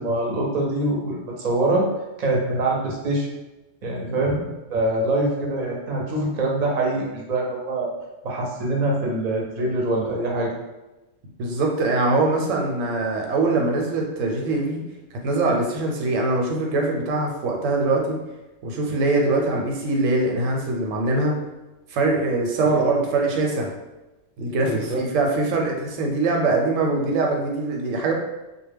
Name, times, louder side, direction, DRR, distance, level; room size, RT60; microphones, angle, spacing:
voice 1, 0.0-1.9 2.2-3.3 3.8-7.9 8.2-10.5 22.7-23.0 24.6-25.0, right 2 dB, 50° right, -2 dB, 0.5 m, -24 dB
voice 2, 11.4-14.8 15.2-18.2 18.6-21.3 21.9-23.7 24.4-28.1, right 2 dB, 90° right, 1 dB, 0.9 m, -23 dB
2.2 x 2.0 x 3.3 m, 1.0 s
omnidirectional pair, 1.3 m